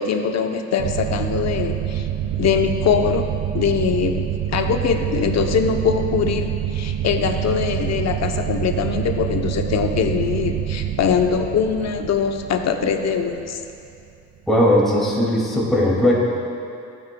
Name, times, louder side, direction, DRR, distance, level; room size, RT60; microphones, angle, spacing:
voice 1, 0.0-2.1 2.4-3.3 3.5-13.6, left 6 dB, 60° left, 5 dB, 0.8 m, -22 dB
sound 1, 0.8-14.0, right 11 dB, 55° right, 0.4 m, -26 dB
voice 2, 14.5-16.1, left 1 dB, ahead, -6 dB, 2.2 m, -18 dB
14.5 x 9.2 x 2.3 m, 2.7 s
cardioid pair, 90°, 30 cm